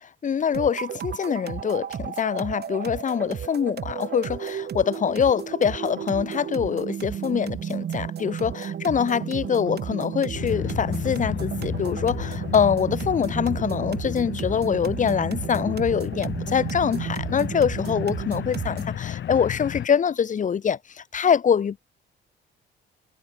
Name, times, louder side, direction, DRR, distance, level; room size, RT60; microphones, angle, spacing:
voice 1, 0.0-21.8, left 7 dB, 40° left, 0.8 m, -24 dB
sound 1, 0.5-19.0, right 9 dB, 55° right, 1.7 m, -33 dB
sound 2, 10.3-19.9, left 10 dB, 65° left, 4.3 m, -33 dB
cardioid pair, 90°, 20 cm